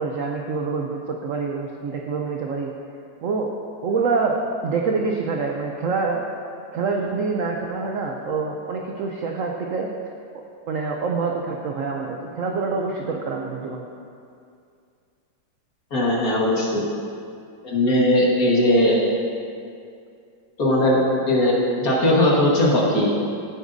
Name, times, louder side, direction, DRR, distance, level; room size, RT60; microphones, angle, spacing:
voice 1, 0.0-2.7 3.2-3.5 3.8-4.4 4.6-6.2 6.7-9.9 10.7-13.9, right 4 dB, 75° right, 1 dB, 0.7 m, -26 dB
voice 2, 15.9-16.8 17.6-19.0 20.6-23.1, left 1 dB, 45° left, -4 dB, 1.9 m, -19 dB
15.0 x 8.1 x 2.7 m, 2.4 s
omnidirectional pair, 2.2 m